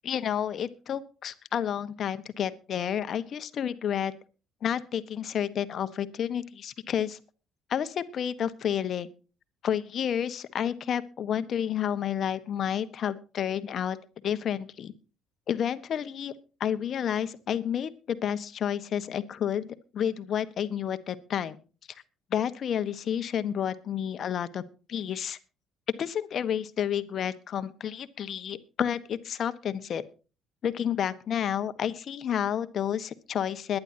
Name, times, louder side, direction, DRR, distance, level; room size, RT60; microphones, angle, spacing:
voice 1, 0.0-4.1 4.6-7.2 7.7-9.1 9.6-14.0 14.2-14.9 15.5-16.3 16.6-21.6 22.3-24.6 24.9-25.4 25.9-30.0 30.6-33.8, left 9 dB, 55° left, 12 dB, 1.3 m, -30 dB
21.5 x 10.5 x 2.9 m, 0.34 s
hypercardioid pair, 60°, 0 cm